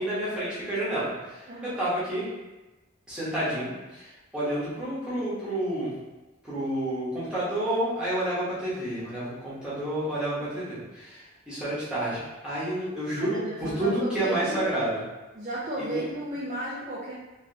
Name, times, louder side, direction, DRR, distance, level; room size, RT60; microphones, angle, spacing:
voice 1, 0.0-2.3 3.1-5.9 6.4-15.0 15.8-16.0, right 1 dB, 5° right, -11 dB, 1.1 m, -30 dB
voice 2, 1.5-1.8 13.2-14.6 15.3-17.1, right 1 dB, 35° right, -7 dB, 0.4 m, -34 dB
2.9 x 2.8 x 2.7 m, 1.1 s
head